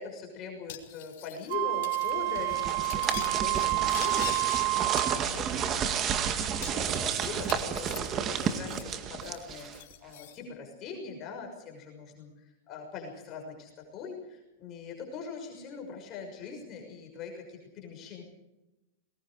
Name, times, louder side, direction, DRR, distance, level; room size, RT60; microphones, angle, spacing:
voice 1, 0.0-18.2, left 5 dB, 35° left, 2 dB, 6.2 m, -42 dB
Cutlery silverware, 0.7-1.5 1.8-2.1 2.4-4.6 5.0-5.7 6.0-6.1 6.6-8.9 9.2-10.4, left 12 dB, 65° left, 3.4 m, -44 dB
Wind instrument woodwind instrument, 1.5-5.2, right 21 dB, 55° right, 1.0 m, -29 dB
sound 1, 2.1-9.9, right 8 dB, 30° right, 2.0 m, -31 dB
28.5 x 20.5 x 4.9 m, 0.96 s
hypercardioid pair, 135°, 0 cm